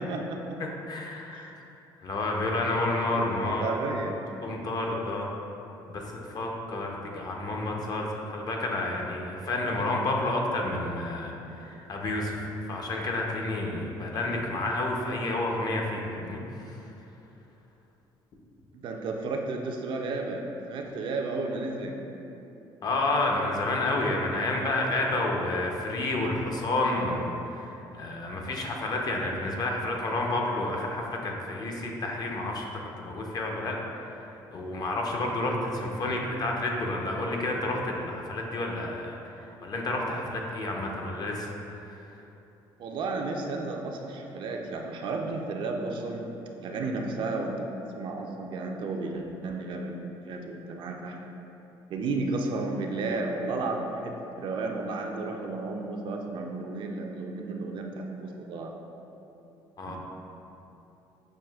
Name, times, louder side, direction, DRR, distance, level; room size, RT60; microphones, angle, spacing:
voice 1, 0.0-0.6 1.3-1.4 3.1-4.2 18.7-21.9 42.8-46.3 46.6-47.7 47.9-50.0 50.3-51.2 51.9-58.7 59.8-60.0, right 3 dB, 60° right, 2 dB, 0.4 m, -33 dB
voice 2, 0.6-1.5 2.0-3.8 4.4-5.3 5.9-16.8 22.8-32.6 33.0-41.5 41.9-42.2 59.8-60.0, left 2 dB, 45° left, 0 dB, 0.6 m, -30 dB
6.1 x 2.6 x 2.3 m, 2.9 s
cardioid pair, 100°, 10 cm